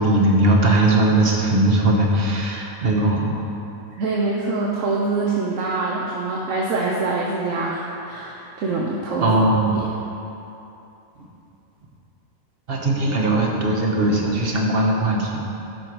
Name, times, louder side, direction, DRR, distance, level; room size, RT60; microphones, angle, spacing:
voice 1, 0.0-3.4 9.2-9.8 12.7-15.5, right 1 dB, 45° right, -1 dB, 1.2 m, -19 dB
voice 2, 4.0-9.4 9.7-9.9, right 3 dB, 70° right, -3 dB, 1.1 m, -24 dB
12.0 x 4.5 x 4.7 m, 2.9 s
omnidirectional pair, 1.4 m